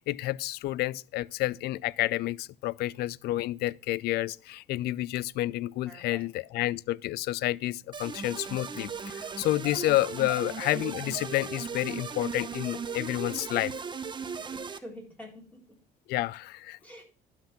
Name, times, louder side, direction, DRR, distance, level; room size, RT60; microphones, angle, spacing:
voice 1, 0.0-13.7 16.1-16.8, left 16 dB, 70° left, 0.4 m, -30 dB
voice 2, 5.8-6.3 14.4-15.8 16.8-17.1, equal, 10° left, 4.1 m, -47 dB
sound 1, 7.9-14.8, right 5 dB, 25° right, 0.9 m, -37 dB
12.0 x 5.8 x 5.8 m
cardioid pair, 110°, 17 cm